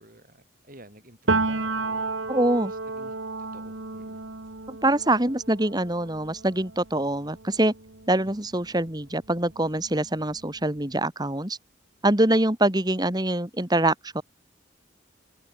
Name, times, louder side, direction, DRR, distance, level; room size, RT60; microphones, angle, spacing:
voice 1, 0.0-2.1 2.7-3.1 3.5-4.2 8.2-8.3, right 1 dB, 45° right, 6.2 m, -50 dB
Piano, 1.3-8.9 9.2-10.8, right 3 dB, 75° right, 1.9 m, -32 dB
voice 2, 2.3-2.7 4.7-7.7 8.1-11.6 12.0-14.2, right 1 dB, 20° right, 2.0 m, -24 dB
head